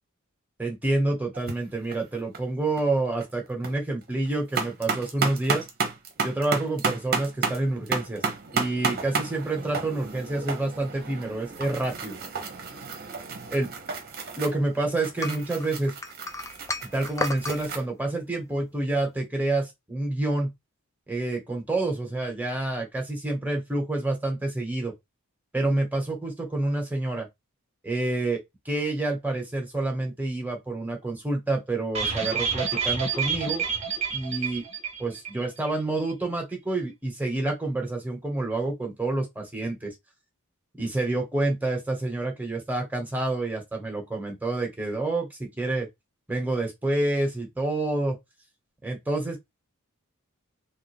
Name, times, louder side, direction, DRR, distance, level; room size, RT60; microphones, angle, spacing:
voice 1, 0.6-5.6 6.2-8.2 8.5-12.2 13.5-13.7 14.4-15.9 16.9-20.5 21.1-24.9 25.5-27.3 27.8-28.4 28.6-33.6 34.1-34.6 35.0-39.9 40.8-45.2 45.6-45.9 46.3-48.1 48.8-49.4, right 2 dB, 10° right, 1.4 m, -28 dB
sound 1, 1.3-1.5 1.9-2.4 2.8-2.9 3.2-3.7 4.1-17.8, right 4 dB, 45° right, 1.0 m, -32 dB
sound 2, 15.2-17.6, left 2 dB, 15° left, 0.5 m, -32 dB
sound 3, 32.0-35.4 35.7-35.8 36.1-36.2, right 6 dB, 30° right, 1.2 m, -28 dB
3.6 x 2.7 x 3.4 m
head